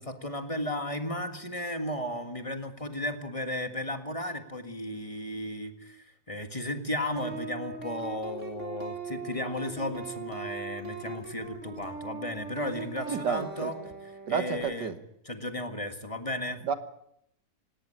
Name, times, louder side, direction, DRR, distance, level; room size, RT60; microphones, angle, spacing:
voice 1, 0.0-13.8 14.0-14.9 15.2-16.6, left 1 dB, 20° left, 1.7 m, -34 dB
sound 1, 7.2-14.6, right 4 dB, 45° right, 3.7 m, -40 dB
voice 2, 13.1-13.7 14.3-15.0 16.6-16.7, right 7 dB, 90° right, 2.0 m, -30 dB
18.0 x 18.0 x 8.8 m
omnidirectional pair, 1.8 m